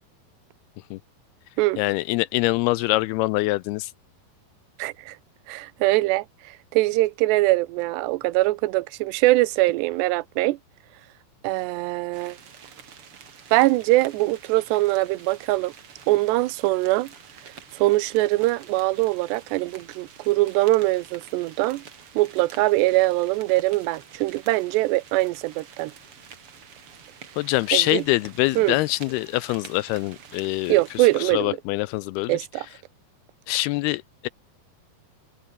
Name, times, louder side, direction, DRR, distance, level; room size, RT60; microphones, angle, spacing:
voice 1, 1.8-3.9 27.4-32.4 33.5-34.3, left 19 dB, 80° left, 2.4 m, -24 dB
voice 2, 4.8-5.2 5.5-6.3 6.7-10.6 11.4-12.4 13.5-15.7 16.1-17.1 17.7-21.8 22.2-25.9 27.7-28.0 28.6-28.8 30.7-31.6 32.3-32.7, right 19 dB, 85° right, 2.9 m, -22 dB
sound 1, 12.1-31.3, right 7 dB, 40° right, 2.6 m, -48 dB
omnidirectional pair, 4.8 m